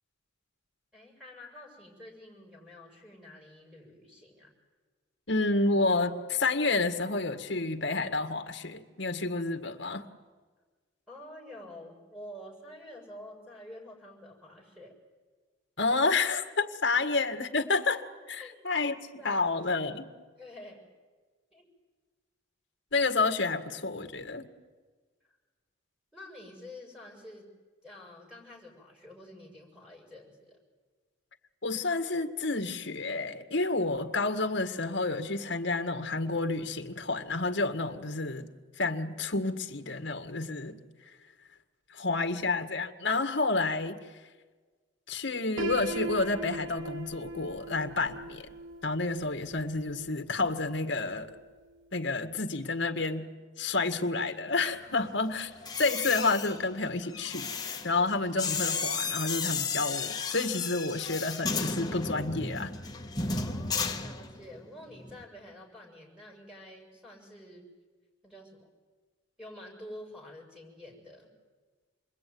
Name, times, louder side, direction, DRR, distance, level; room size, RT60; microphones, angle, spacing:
voice 1, 0.9-4.5 11.1-14.9 16.9-17.0 18.4-18.7 19.2-19.8 20.4-20.9 21.5-21.7 25.3-25.4 26.1-27.5 27.8-30.6 63.3-67.7 68.2-68.7 69.4-71.3, left 1 dB, 5° right, -2 dB, 7.0 m, -48 dB
voice 2, 5.3-10.1 15.8-20.1 22.9-24.5 31.6-38.5 38.8-40.8 41.1-41.2 41.9-44.0 45.1-48.5 48.8-51.4 51.9-62.7, left 3 dB, 65° left, 7 dB, 1.8 m, -30 dB
Piano, 45.6-51.4, right 2 dB, 80° right, 1.2 m, -40 dB
sound 1, 55.5-64.6 64.9-65.2, left 4 dB, 20° left, 1.4 m, -34 dB
28.5 x 21.5 x 9.5 m, 1.4 s
head